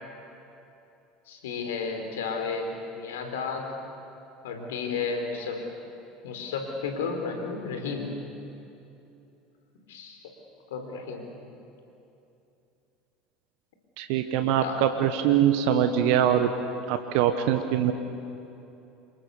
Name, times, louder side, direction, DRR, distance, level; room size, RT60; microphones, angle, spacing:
voice 1, 1.3-3.7 4.4-5.6 6.2-8.2 9.9-10.2 10.7-11.2 14.4-14.9, left 5 dB, 75° left, 4 dB, 4.1 m, -33 dB
voice 2, 14.0-16.5 16.9-17.9, right 10 dB, 65° right, 7 dB, 1.3 m, -23 dB
27.5 x 23.5 x 6.9 m, 2.8 s
hypercardioid pair, 75°, 0 cm